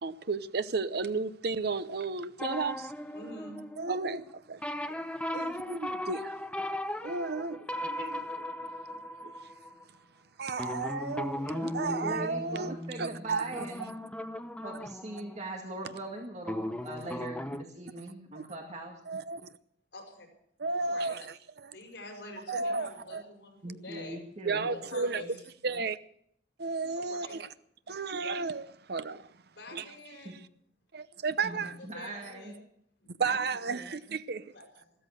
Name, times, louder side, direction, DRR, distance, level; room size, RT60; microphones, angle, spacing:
voice 1, 0.0-2.9 3.8-4.6 5.4-6.4 7.0-9.3 10.4-13.7 18.4-18.5 19.1-19.6 20.6-21.7 22.5-23.2 24.4-25.2 25.6-26.0 26.6-27.5 27.9-29.3 29.7-29.8 30.9-31.8 33.2-34.5, right 4 dB, 65° right, 0.8 m, -33 dB
sound 1, 2.4-4.3 4.6-9.8 10.6-16.0 16.4-17.6, left 1 dB, 5° left, 0.7 m, -37 dB
voice 2, 3.1-3.6 5.3-5.7 19.9-20.3 20.8-21.3 21.7-24.2 24.6-25.4 26.9-27.4 29.5-30.4 31.4-32.6 33.0-33.2 34.5-34.9, left 1 dB, 75° left, 5.7 m, -46 dB
voice 3, 11.5-14.0 14.6-19.0 23.6-24.7 30.2-30.3 31.4-32.6 33.2-33.9, right 1 dB, 40° right, 1.9 m, -41 dB
14.5 x 13.5 x 6.5 m
head